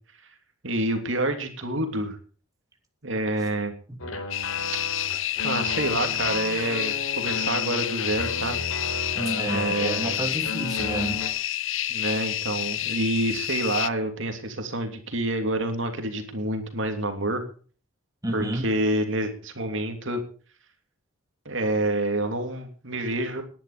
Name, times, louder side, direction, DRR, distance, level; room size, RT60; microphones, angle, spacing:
voice 1, 0.6-2.2 3.0-3.7 5.4-8.6 9.5-10.2 11.9-17.4 18.3-20.2 21.4-23.4, right 1 dB, 60° right, 5 dB, 3.0 m, -28 dB
sound 1, 4.0-11.3, left 2 dB, 85° left, 4.3 m, -34 dB
sound 2, 4.3-13.9, left 13 dB, 65° left, 0.8 m, -29 dB
voice 2, 9.1-11.2 18.2-18.7, right 1 dB, 15° right, 3 dB, 3.0 m, -30 dB
20.0 x 11.0 x 5.1 m, 0.41 s
head